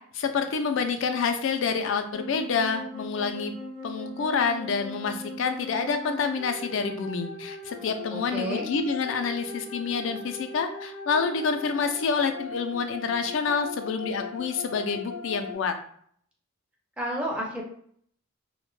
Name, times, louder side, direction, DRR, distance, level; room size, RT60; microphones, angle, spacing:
voice 1, 0.1-3.5 3.8-15.7, left 5 dB, 65° left, 7 dB, 0.3 m, -28 dB
sound 1, 2.1-15.5, left 3 dB, 65° right, 0.6 m, -39 dB
voice 2, 8.1-8.7 17.0-17.6, right 1 dB, 5° right, -2 dB, 0.4 m, -31 dB
2.1 x 2.1 x 3.0 m, 0.62 s
head